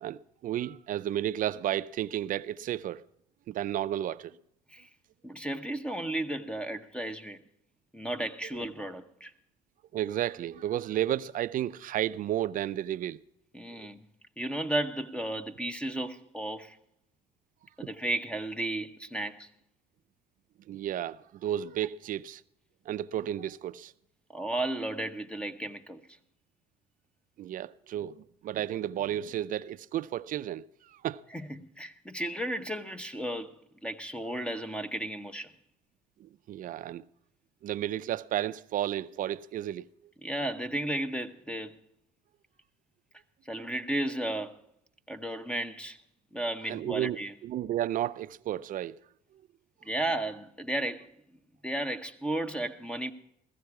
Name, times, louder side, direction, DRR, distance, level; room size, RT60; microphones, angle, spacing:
voice 1, 0.0-3.0 3.5-4.4 8.5-8.6 9.9-13.2 13.8-13.9 20.7-22.4 22.9-23.9 27.4-31.2 36.2-37.0 37.6-39.8 46.6-49.0 49.3-49.4, right 12 dB, 55° right, 0.4 m, -32 dB
voice 2, 5.2-7.4 7.9-9.3 13.5-14.0 14.4-16.8 17.8-19.5 24.3-26.0 31.3-33.5 33.8-35.5 40.2-41.7 43.5-44.6 45.1-46.0 46.3-47.3 49.8-51.1 51.6-53.1, right 1 dB, 5° left, 0.8 m, -34 dB
15.5 x 14.5 x 4.7 m
cardioid pair, 110°, 17 cm